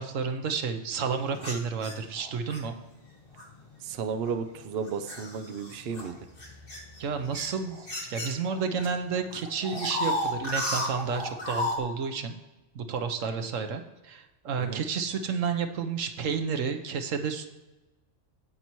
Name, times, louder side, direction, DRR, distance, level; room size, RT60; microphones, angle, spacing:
voice 1, 0.0-2.8 7.0-12.3 12.7-17.5, right 5 dB, 85° right, 7 dB, 1.2 m, -31 dB
sound 1, 1.4-2.6 3.4-3.6 4.2-8.9 9.1-11.8, left 1 dB, 45° left, 1.8 m, -33 dB
voice 2, 3.8-6.2 14.6-14.8, right 6 dB, 60° right, 9 dB, 0.8 m, -33 dB
16.5 x 5.6 x 3.0 m, 1.1 s
omnidirectional pair, 1.3 m